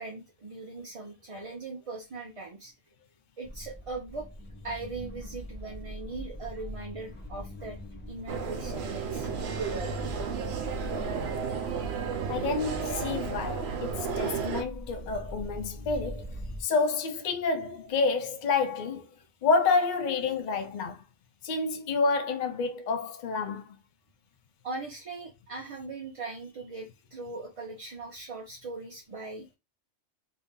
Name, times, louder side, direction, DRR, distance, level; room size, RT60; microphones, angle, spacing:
voice 1, 0.0-2.7 3.4-4.3 4.6-7.8 8.1-9.5 21.5-21.6 24.6-29.5, right 3 dB, 40° right, 0.5 m, -40 dB
sound 1, 3.4-16.6, left 1 dB, 15° left, 0.5 m, -42 dB
sound 2, 8.3-14.6, right 6 dB, 65° right, 0.9 m, -32 dB
voice 2, 12.3-19.1 19.4-21.0 21.4-23.7, left 4 dB, 50° left, 0.6 m, -29 dB
2.8 x 2.7 x 3.6 m
omnidirectional pair, 1.2 m